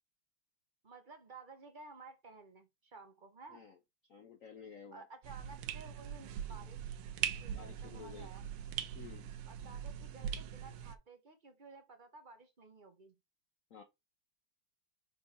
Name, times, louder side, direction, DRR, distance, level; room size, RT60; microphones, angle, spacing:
voice 1, 0.8-3.6 4.9-7.0 7.4-8.4 9.5-13.1, right 3 dB, 45° right, 0.6 m, -55 dB
voice 2, 4.1-5.0 7.5-8.3 8.9-9.2 13.7-13.8, left 6 dB, 55° left, 1.0 m, -52 dB
sound 1, 5.2-10.9, right 9 dB, 90° right, 1.6 m, -41 dB
4.7 x 4.2 x 5.3 m
omnidirectional pair, 2.4 m